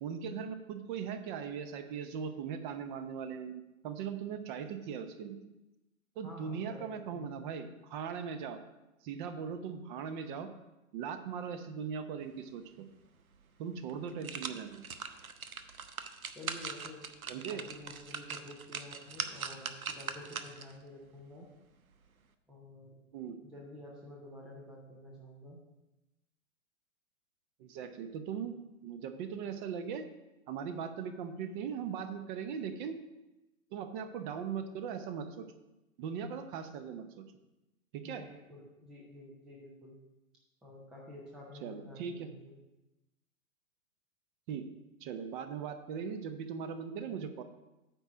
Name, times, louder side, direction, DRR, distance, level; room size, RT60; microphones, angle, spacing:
voice 1, 0.0-5.4 6.2-8.6 9.0-10.5 10.9-12.9 13.6-14.8 17.3-17.6 23.1-23.4 27.6-28.5 28.8-30.0 30.5-33.0 33.7-35.5 36.0-37.1 37.9-38.2 41.6-42.3 44.5-44.7 45.0-47.4, right 7 dB, 35° right, 9 dB, 0.8 m, -39 dB
voice 2, 6.2-7.6 16.3-17.0 17.5-21.5 22.5-23.0 23.4-25.6 38.0-40.0 40.6-42.6, left 1 dB, ahead, -4 dB, 0.3 m, -50 dB
sound 1, 13.3-13.4 13.9-20.8 21.2-21.3, right 6 dB, 90° right, 0.7 m, -41 dB
9.0 x 4.4 x 6.0 m, 0.98 s
hypercardioid pair, 115°, 41 cm